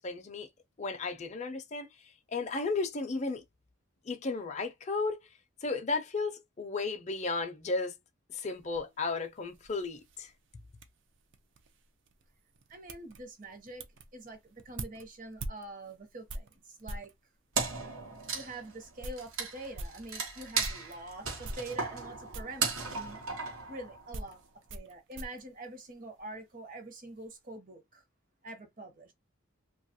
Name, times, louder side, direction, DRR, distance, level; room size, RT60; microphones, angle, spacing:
voice 1, 0.0-0.5 0.8-1.9 2.3-3.4 4.0-5.2 5.6-7.9 8.3-10.3, left 3 dB, 30° left, 0.5 m, -34 dB
sound 1, 8.5-17.2 17.9-18.0 18.4-18.5 18.8-21.0 21.4-22.1 22.3-22.7 23.5-26.4 26.7-27.3, right 2 dB, 55° right, 0.5 m, -45 dB
voice 2, 12.7-13.9 14.1-17.1 18.3-23.2 23.7-24.4 24.7-28.0 28.4-29.1, right 2 dB, 40° right, 0.8 m, -45 dB
Wood, 17.5-24.3, right 4 dB, 75° right, 1.0 m, -36 dB
2.8 x 2.3 x 2.7 m
head